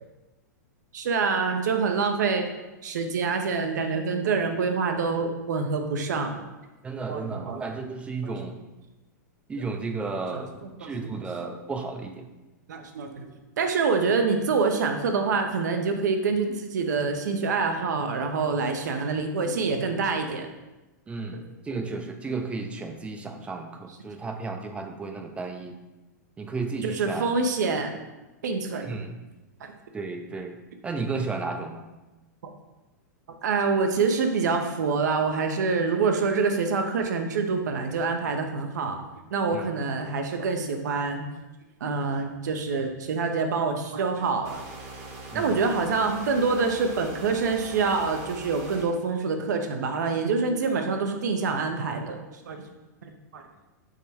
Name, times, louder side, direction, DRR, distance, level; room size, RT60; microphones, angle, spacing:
voice 1, 0.9-2.4 2.8-6.4 7.1-7.6 8.2-8.4 10.6-11.2 12.7-13.3 13.6-20.5 21.3-21.4 26.8-28.0 28.4-28.9 33.4-39.0 39.3-41.2 41.8-44.6 45.3-52.2 52.5-52.6 53.0-53.4, right 4 dB, 75° right, 5 dB, 0.5 m, -26 dB
voice 2, 6.8-8.6 9.5-12.3 21.1-21.4 21.6-25.8 26.4-27.3 28.8-29.1 29.9-30.6 30.8-31.9 39.5-39.7 45.3-45.6, right 4 dB, 10° right, 5 dB, 0.3 m, -33 dB
sound 1, 44.4-48.8, right 3 dB, 45° right, 0.9 m, -42 dB
3.6 x 2.2 x 4.2 m, 1.1 s
hypercardioid pair, 115°, 10 cm